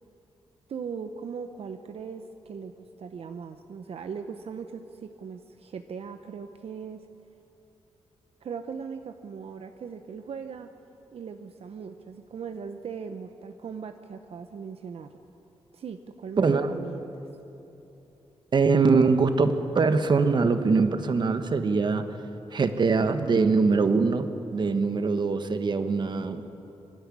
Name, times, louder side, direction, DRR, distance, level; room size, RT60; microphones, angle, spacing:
voice 1, 0.7-7.1 8.4-10.7 11.1-15.2 15.7-17.2, right 6 dB, 65° right, 8 dB, 0.7 m, -39 dB
voice 2, 16.4-16.7 18.5-22.2 22.5-26.4, right 4 dB, 45° right, 9 dB, 1.1 m, -23 dB
24.0 x 12.0 x 9.9 m, 3.0 s
wide cardioid pair, 150°, 11 cm